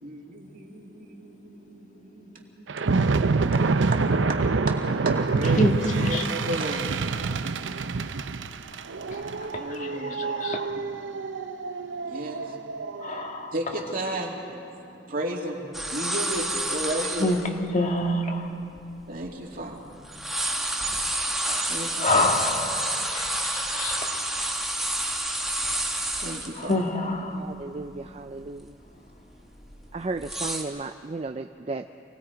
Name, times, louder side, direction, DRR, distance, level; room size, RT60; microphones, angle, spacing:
voice 1, 0.0-3.6 4.3-4.4 4.7-4.8 5.0-5.7 6.0-7.2 9.5-10.3 12.0-12.4 13.5-14.3 14.7-17.4 19.1-19.9 21.7-22.3 26.2-26.8, right 1 dB, 50° right, 2.6 m, -34 dB
sound 1, 2.7-13.3, right 4 dB, 80° right, 0.7 m, -26 dB
voice 2, 5.5-6.3 6.7-6.8 7.1-7.3 9.1-10.8 12.4-12.5 13.0-13.5 17.2-17.4 17.7-18.5 21.0-21.7 22.0-24.3 26.5-27.4, left 1 dB, 40° left, 1.8 m, -28 dB
sound 2, 15.7-17.5 18.1-18.2 18.8-19.8 20.0-26.7 27.1-27.2 27.6-28.0 28.4-28.6 29.3-30.6, right 1 dB, ahead, 1.6 m, -29 dB
voice 3, 27.3-28.6 29.9-31.9, right 3 dB, 30° right, 0.4 m, -34 dB
28.0 x 19.5 x 5.1 m
head